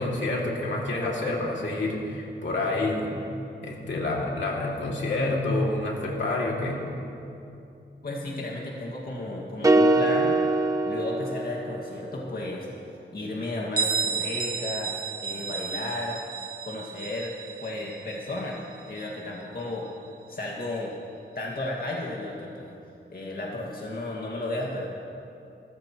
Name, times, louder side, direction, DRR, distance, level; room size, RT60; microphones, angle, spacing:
voice 1, 0.0-3.1 3.6-6.8, left 2 dB, 75° left, -2 dB, 2.5 m, -28 dB
voice 2, 8.0-10.4 10.9-12.7 13.1-14.9 15.2-16.2 16.6-17.3 17.6-18.6 18.9-19.9 20.3-20.9 21.3-22.7 23.1-24.9, left 2 dB, 55° left, -3 dB, 2.0 m, -33 dB
sound 1, 9.6-12.0, right 2 dB, 20° right, 0.7 m, -22 dB
Bell, 13.8-19.3, right 5 dB, 50° right, 1.1 m, -32 dB
28.5 x 14.5 x 3.1 m, 2.7 s
wide cardioid pair, 120°, 19 cm